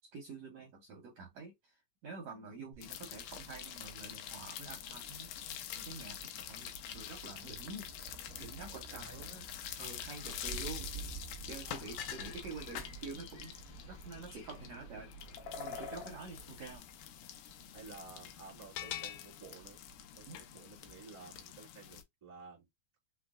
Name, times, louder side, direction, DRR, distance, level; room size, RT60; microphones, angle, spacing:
voice 1, 0.1-5.3 5.8-7.9 8.4-9.4 9.8-13.5 13.9-15.1 15.6-16.8 20.3-20.4, right 4 dB, 75° right, 1.5 m, -48 dB
Thunder, 2.7-20.8, right 6 dB, 60° right, 0.8 m, -53 dB
sound 1, 2.8-22.0, left 11 dB, 85° left, 2.3 m, -46 dB
voice 2, 8.7-9.3 11.6-11.8 17.7-19.8 20.1-22.7, right 5 dB, 25° right, 0.6 m, -53 dB
sound 2, 11.8-16.8, left 4 dB, 65° left, 1.9 m, -50 dB
5.7 x 2.1 x 2.4 m
omnidirectional pair, 4.1 m